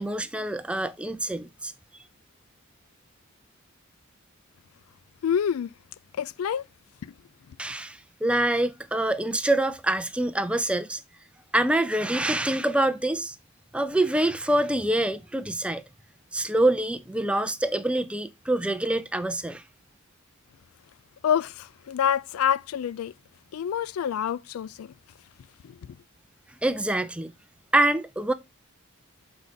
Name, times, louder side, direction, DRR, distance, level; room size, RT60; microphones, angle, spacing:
voice 1, 0.0-1.7 7.6-11.0 11.5-13.4 13.7-15.8 16.3-19.6 26.6-27.3 27.7-28.3, right 1 dB, 5° right, 0.4 m, -25 dB
voice 2, 5.2-5.7 6.2-6.7 7.0-7.1 21.2-23.1 23.5-24.9 25.6-25.8, left 8 dB, 85° left, 0.3 m, -27 dB
6.5 x 4.8 x 3.9 m
head